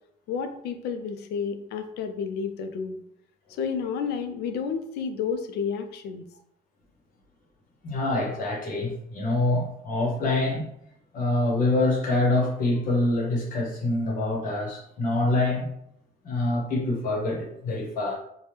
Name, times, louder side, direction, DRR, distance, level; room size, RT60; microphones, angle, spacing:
voice 1, 0.3-3.0 3.6-6.3, left 6 dB, 80° left, 7 dB, 0.4 m, -31 dB
voice 2, 7.8-10.7 11.1-15.7 16.2-18.2, left 2 dB, 55° left, -2 dB, 0.9 m, -25 dB
2.8 x 2.2 x 3.3 m, 0.73 s
cardioid pair, 110°, 17 cm